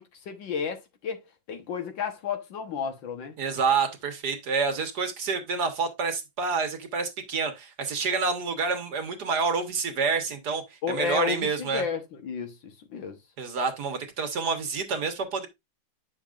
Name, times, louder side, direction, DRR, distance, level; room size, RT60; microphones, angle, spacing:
voice 1, 0.0-3.4 10.8-13.2, left 6 dB, 75° left, 1.9 m, -32 dB
voice 2, 3.4-10.6 10.9-11.8 13.4-15.5, right 5 dB, 60° right, 1.7 m, -28 dB
8.7 x 6.3 x 2.5 m
omnidirectional pair, 2.1 m